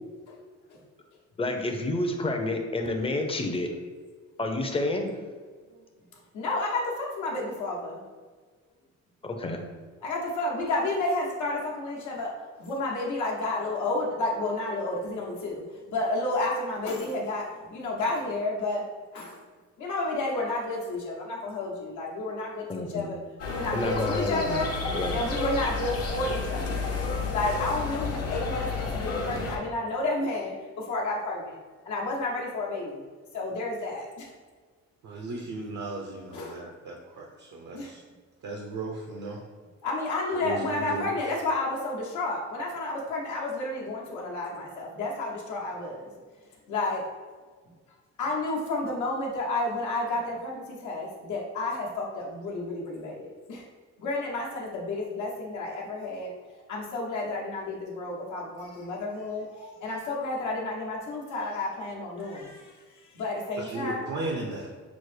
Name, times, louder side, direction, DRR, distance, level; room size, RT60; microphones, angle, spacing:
voice 1, 1.4-3.7 4.4-5.1 9.2-9.6 22.7-23.1 23.7-24.6 24.9-25.2, left 2 dB, 20° left, 3 dB, 0.6 m, -29 dB
voice 2, 6.3-8.0 10.0-18.8 19.1-19.4 19.8-23.2 23.5-24.7 25.1-26.9 27.3-31.6 31.8-33.0 33.3-34.3 36.3-36.6 37.7-38.0 39.8-46.1 46.7-47.0 48.2-53.6 54.0-56.3 56.7-62.7 63.1-64.1, left 2 dB, 75° left, -2 dB, 1.0 m, -31 dB
sound 1, 23.4-29.6, left 3 dB, 55° left, 0.8 m, -31 dB
voice 3, 35.0-38.0 38.4-39.4 40.3-41.1 63.6-64.7, right 2 dB, 70° right, 0 dB, 0.6 m, -36 dB
6.0 x 2.0 x 3.2 m, 1.5 s
cardioid pair, 90°, 30 cm